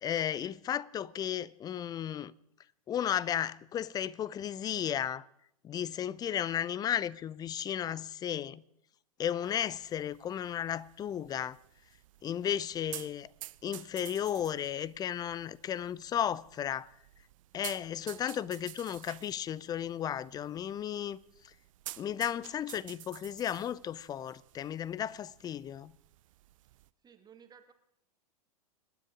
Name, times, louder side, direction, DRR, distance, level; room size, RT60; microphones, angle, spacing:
voice 1, 0.0-2.3 2.9-5.2 5.6-8.6 9.2-11.6 12.2-13.3 13.6-16.9 17.5-21.2 22.0-25.9, left 10 dB, 20° left, 0.5 m, -34 dB
sound 1, 9.4-26.9, right 15 dB, 55° right, 0.6 m, -51 dB
voice 2, 27.0-27.7, right 7 dB, 20° right, 1.6 m, -56 dB
25.5 x 10.0 x 4.9 m
figure-of-eight pair, 100°, 20 cm